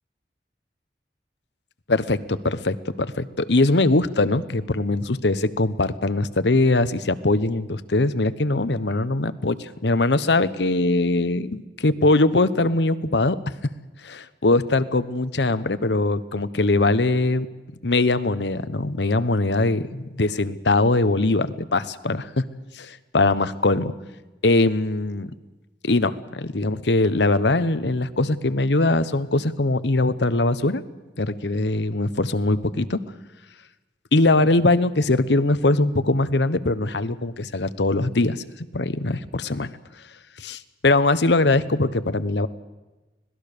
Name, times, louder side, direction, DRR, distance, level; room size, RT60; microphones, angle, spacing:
voice 1, 1.9-13.4 14.0-17.5 17.8-22.4 22.7-23.9 24.4-25.3 25.8-30.8 31.2-33.0 34.1-38.4 38.7-39.7 40.4-42.5, left 2 dB, 80° left, 14 dB, 1.1 m, -21 dB
25.5 x 19.0 x 6.8 m, 1.1 s
head